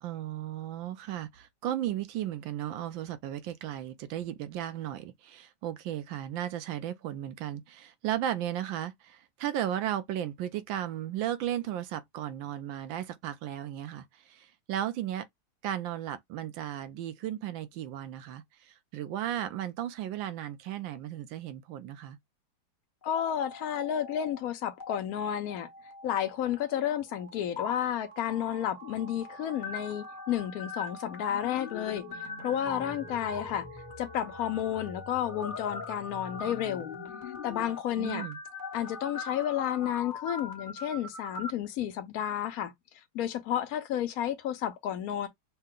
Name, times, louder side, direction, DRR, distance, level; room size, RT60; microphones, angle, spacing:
voice 1, 0.0-15.3 15.6-22.2 38.0-38.4, right 11 dB, 75° right, 1.3 m, -35 dB
voice 2, 23.0-25.7 26.0-33.7 34.0-36.9 37.4-38.3 38.7-42.7 43.1-45.3, left 10 dB, 80° left, 0.8 m, -31 dB
sound 1, 23.0-24.4 24.7-24.9 25.5-41.5, left 4 dB, 30° left, 1.0 m, -42 dB
5.5 x 2.1 x 3.7 m
omnidirectional pair, 2.3 m